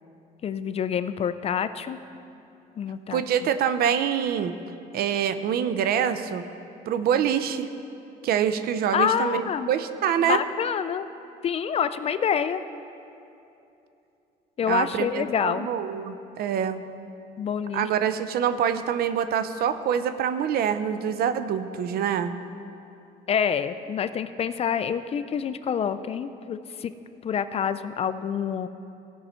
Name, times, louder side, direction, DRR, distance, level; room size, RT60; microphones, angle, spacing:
voice 1, 0.4-2.0 2.8-3.5 8.9-9.7 10.2-11.1 11.4-12.6 14.6-15.7 17.4-17.9 23.3-26.9 27.2-28.7, left 7 dB, 35° left, 12 dB, 0.4 m, -27 dB
voice 2, 3.1-4.5 4.9-6.4 6.9-7.7 8.2-10.4 14.7-16.8 17.7-22.3, right 8 dB, 65° right, 11 dB, 0.6 m, -25 dB
16.0 x 5.5 x 4.4 m, 2.8 s
cardioid pair, 110°, 17 cm